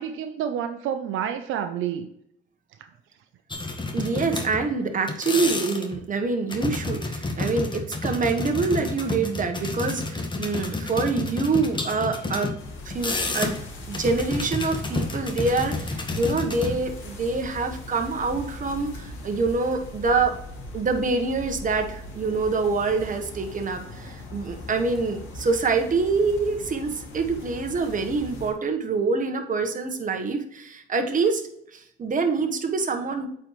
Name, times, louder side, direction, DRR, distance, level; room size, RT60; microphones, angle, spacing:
voice 1, 0.0-2.1 2.8-2.9, right 9 dB, 85° right, 7 dB, 0.6 m, -29 dB
sound 1, 3.5-4.8 5.1-6.0 6.5-12.5 12.9-13.6 13.9-16.7, left 2 dB, 25° left, 1.3 m, -30 dB
voice 2, 3.9-12.5 12.8-13.5 13.9-20.4 20.7-31.4 31.7-33.3, right 4 dB, 40° right, 5 dB, 1.2 m, -26 dB
sound 2, 12.6-28.5, left 1 dB, 85° left, 2.0 m, -40 dB
8.6 x 4.5 x 3.1 m, 0.75 s
cardioid pair, 90°, 20 cm